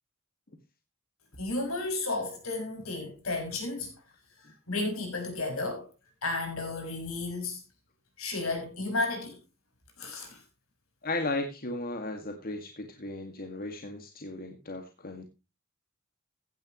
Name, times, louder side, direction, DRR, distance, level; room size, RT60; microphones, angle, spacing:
voice 1, 1.4-3.9 4.7-5.9 6.2-7.6 8.2-9.4 10.0-10.4, left 2 dB, 80° left, 6.2 m, -33 dB
voice 2, 11.0-15.2, left 2 dB, 45° left, 2.0 m, -35 dB
16.0 x 10.5 x 3.1 m
head